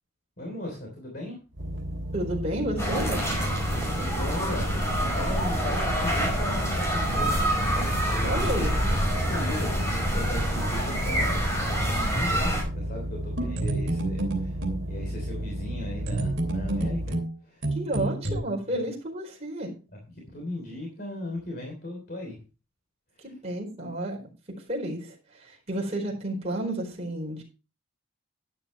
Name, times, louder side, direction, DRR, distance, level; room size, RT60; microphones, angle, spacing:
voice 1, 0.4-1.4 3.9-7.4 7.7-11.4 11.8-17.2 17.4-18.5 20.1-22.4 23.1-23.3, left 1 dB, 45° left, 1 dB, 3.2 m, -37 dB
sound 1, 1.5-17.1, equal, 75° right, 1.7 m, -34 dB
voice 2, 2.1-3.4 8.2-8.7 17.7-19.7 23.2-24.2 24.5-27.4, right 1 dB, 30° right, -1 dB, 4.4 m, -31 dB
sound 2, 2.8-12.6, equal, 15° left, 5.2 m, -27 dB
sound 3, 13.4-14.8 16.1-18.4, right 2 dB, 55° right, 3.1 m, -29 dB
12.0 x 10.0 x 3.2 m, 0.31 s
head